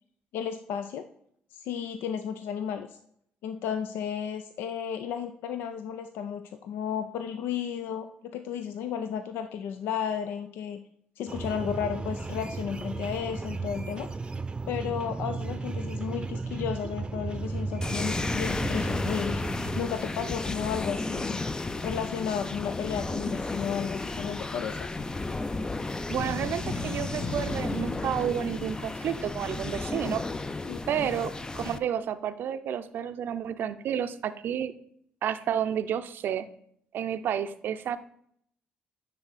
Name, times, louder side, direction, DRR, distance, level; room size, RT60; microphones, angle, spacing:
voice 1, 0.3-1.1 1.5-3.0 3.4-10.8 11.2-14.1 14.7-19.4 19.8-21.4 21.8-24.9 30.7-31.1, left 8 dB, 80° left, 8 dB, 0.4 m, -33 dB
sound 1, 11.3-19.9, right 3 dB, 25° right, 0.6 m, -34 dB
sound 2, 17.8-31.8, left 2 dB, 20° left, 0.4 m, -33 dB
sound 3, 26.1-29.6, left 3 dB, 50° left, 1.5 m, -36 dB
voice 2, 26.1-30.2 30.9-34.7 35.2-36.5 36.9-38.0, right 9 dB, 65° right, 11 dB, 0.5 m, -31 dB
9.7 x 3.9 x 4.1 m, 0.68 s
supercardioid pair, 65°, 4 cm